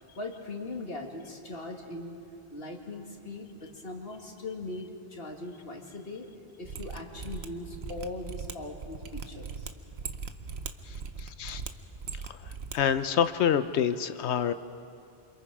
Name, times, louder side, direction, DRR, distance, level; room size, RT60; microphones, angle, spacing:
voice 1, 0.2-2.2 2.5-6.3 6.6-9.7, left 2 dB, 60° left, 1 dB, 2.3 m, -40 dB
Mechanisms, 6.6-12.8 13.0-13.1, right 5 dB, 75° right, 1.1 m, -39 dB
voice 2, 10.9-11.6 12.3-14.5, left 8 dB, 90° left, 11 dB, 1.0 m, -28 dB
28.0 x 26.0 x 4.9 m, 2.6 s
omnidirectional pair, 1.1 m